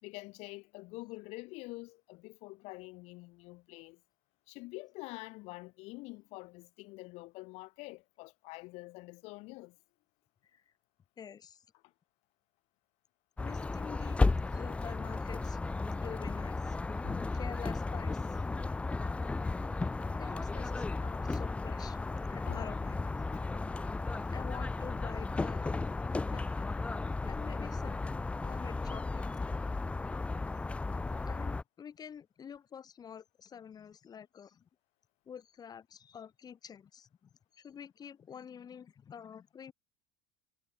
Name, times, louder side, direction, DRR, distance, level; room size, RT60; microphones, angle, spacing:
voice 1, 0.0-4.0 4.5-9.8 16.9-17.3 19.3-19.4 22.5-22.7 23.3-23.4 24.1-24.3, left 23 dB, 70° left, 3.0 m, -46 dB
voice 2, 11.2-11.6 13.4-14.2 14.5-15.6 16.0-16.8 17.3-18.4 20.1-22.0 22.3-23.0 24.3-25.9 26.3-26.8 27.2-28.0 28.4-29.2 31.2-34.7 35.3-39.7, left 8 dB, 35° left, 2.5 m, -48 dB
sound 1, 13.4-31.6, left 3 dB, 10° left, 0.4 m, -34 dB
supercardioid pair, 100°, 12 cm